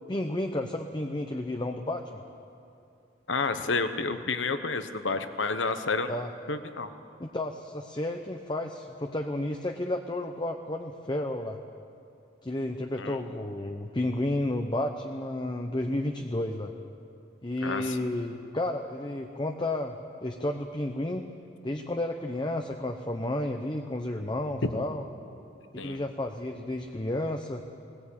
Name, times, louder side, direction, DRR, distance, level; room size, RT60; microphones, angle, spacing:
voice 1, 0.0-2.2 6.1-6.3 7.2-11.6 12.4-16.7 17.4-21.3 21.6-25.0 25.7-27.6, left 1 dB, 25° left, 5 dB, 0.8 m, -32 dB
voice 2, 3.3-6.1 6.5-6.9 13.0-13.2 17.6-18.0 24.6-24.7 25.8-26.0, left 4 dB, 75° left, 9 dB, 1.1 m, -30 dB
19.5 x 19.0 x 8.7 m, 2.6 s
head